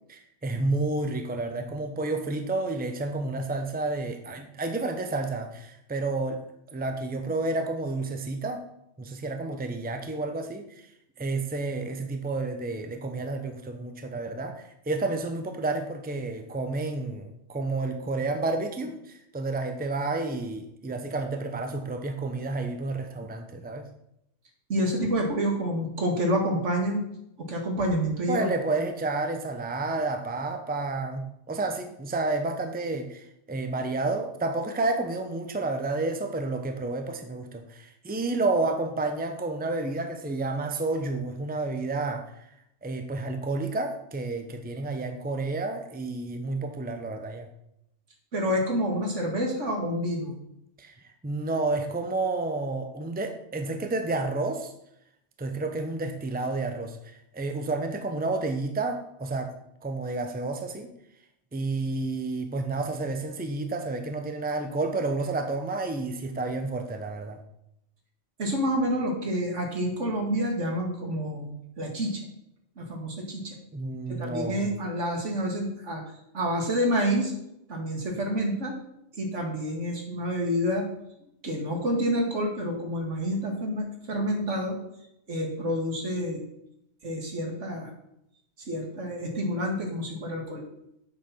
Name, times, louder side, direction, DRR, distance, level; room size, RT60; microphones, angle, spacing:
voice 1, 0.1-6.4 6.7-8.6 9.0-10.6 11.2-23.9 28.3-42.2 42.8-47.5 50.8-54.7 55.4-59.5 59.8-60.9 61.5-67.4 73.7-74.6, right 3 dB, 10° right, 5 dB, 0.8 m, -30 dB
voice 2, 24.7-27.1 27.4-28.5 48.3-50.3 68.4-71.5 71.8-72.2 72.8-73.5 74.1-76.0 76.3-77.3 77.7-78.8 79.2-80.9 81.4-84.8 85.3-86.4 87.0-87.9 88.7-90.6, equal, 75° right, 1 dB, 2.3 m, -28 dB
8.1 x 6.7 x 5.7 m, 0.80 s
omnidirectional pair, 1.3 m